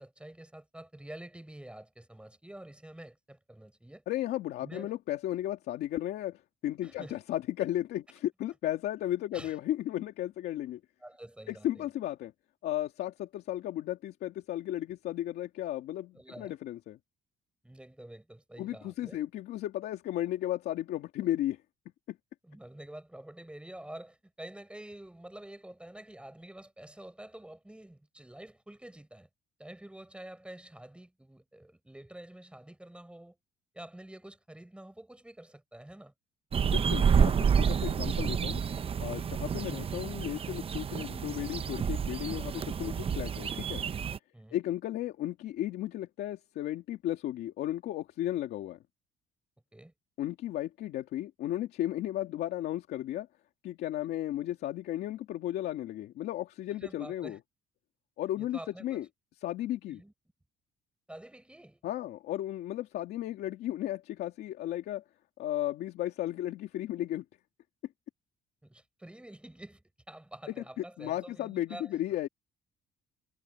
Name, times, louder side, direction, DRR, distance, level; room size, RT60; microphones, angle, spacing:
voice 1, 0.0-4.0 4.6-4.9 6.8-7.2 9.3-9.6 11.0-11.9 16.1-16.5 17.6-19.2 22.4-29.3 29.6-33.4 33.7-36.1 44.3-44.6 49.7-49.9 56.8-57.4 58.4-59.0 59.9-60.1 61.1-61.8 68.6-72.0, right 1 dB, 5° right, 6.1 m, -48 dB
voice 2, 4.1-10.8 11.5-12.3 12.6-17.0 18.6-21.6 22.1-22.2 36.7-38.6 39.0-43.8 44.5-48.8 50.2-53.3 53.6-57.4 58.2-59.0 59.4-60.0 61.8-65.0 65.4-67.2 70.8-72.3, left 13 dB, 75° left, 2.5 m, -34 dB
sound 1, 36.5-44.2, right 7 dB, 35° right, 0.8 m, -29 dB
cardioid pair, 110°, 17 cm